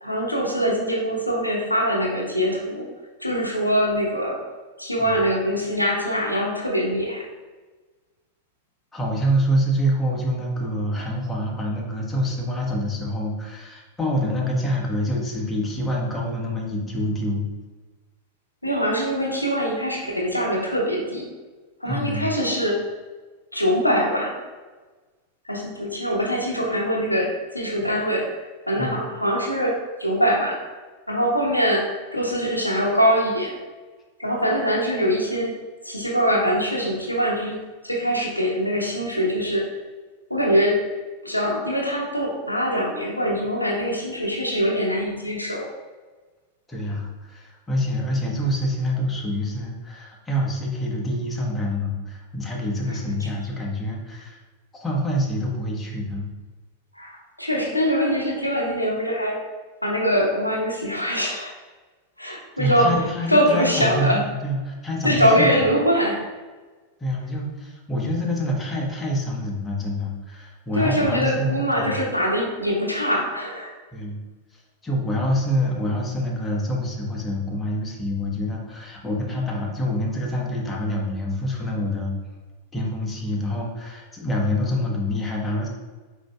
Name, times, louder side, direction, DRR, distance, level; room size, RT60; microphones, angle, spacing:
voice 1, 0.0-2.9 3.2-4.4 4.8-7.2 18.6-21.3 21.8-22.8 23.5-24.3 25.5-28.3 28.7-30.6 31.1-33.6 34.2-35.5 35.8-37.6 37.8-39.7 40.3-40.8 41.2-45.7 56.9-59.4 59.8-61.5 62.2-62.9 63.3-64.2 65.0-66.2 70.7-73.7, equal, 90° left, -1 dB, 0.8 m, -23 dB
voice 2, 8.9-17.5 21.9-22.3 28.8-29.0 46.7-54.4 54.7-56.3 62.6-65.6 67.0-72.0 73.9-74.2 74.5-82.1 82.7-85.7, equal, 10° left, -3 dB, 1.1 m, -26 dB
5.1 x 4.4 x 2.3 m, 1.3 s
figure-of-eight pair, 90°, 0 cm